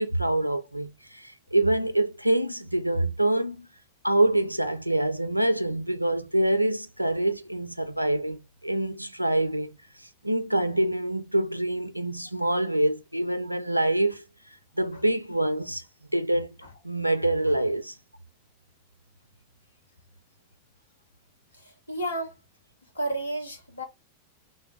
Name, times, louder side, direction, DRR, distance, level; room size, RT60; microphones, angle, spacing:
voice 1, 0.0-3.7 4.0-9.7 10.2-14.2 14.8-15.8 16.1-16.5 16.8-17.9, right 1 dB, 90° right, 0.3 m, -25 dB
voice 2, 21.6-22.3 22.9-23.8, right 1 dB, 75° left, 0.9 m, -31 dB
3.4 x 2.1 x 3.3 m
figure-of-eight pair, 90°, 0 cm